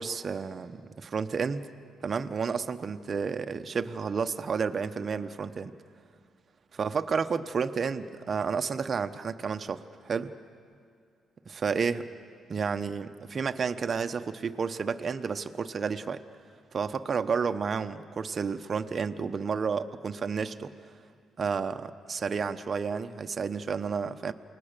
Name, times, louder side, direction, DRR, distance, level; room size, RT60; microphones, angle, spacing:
voice 1, 0.0-1.7 2.0-5.7 6.8-10.3 11.5-12.1 12.5-16.2 16.7-20.7 21.4-24.3, right 5 dB, 45° right, 9 dB, 0.9 m, -31 dB
28.5 x 19.5 x 6.8 m, 2.3 s
cardioid pair, 90°, 0 cm